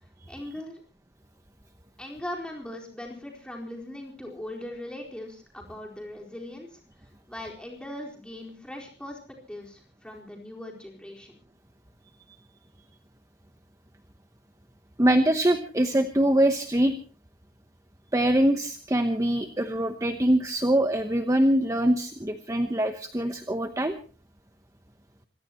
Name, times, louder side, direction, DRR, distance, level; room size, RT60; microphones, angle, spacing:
voice 1, 0.3-0.8 2.0-6.8 7.3-11.3, left 1 dB, 5° left, 0 dB, 4.2 m, -39 dB
voice 2, 15.0-16.9 18.1-24.0, right 1 dB, 20° right, 7 dB, 0.9 m, -23 dB
26.0 x 17.0 x 3.0 m, 0.37 s
head